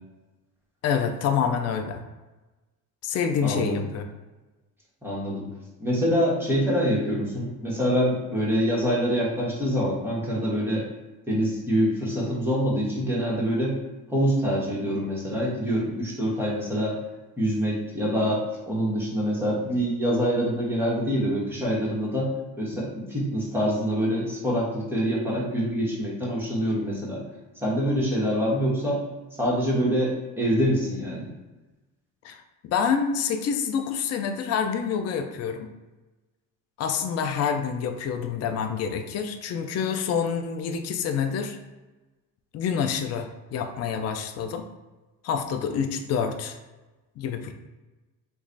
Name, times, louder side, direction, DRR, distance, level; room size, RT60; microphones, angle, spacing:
voice 1, 0.8-2.0 3.0-4.1 32.2-35.7 36.8-41.6 42.5-44.7 45.2-46.6 47.2-47.5, left 7 dB, 45° left, 6 dB, 0.4 m, -27 dB
voice 2, 3.4-3.8 5.0-5.5 5.8-10.9 11.3-13.8 14.1-17.0 17.4-22.3 22.6-27.2 27.6-29.0 29.4-31.3, equal, 5° right, -5 dB, 1.3 m, -25 dB
3.0 x 2.4 x 3.9 m, 1.1 s
cardioid pair, 100°, 37 cm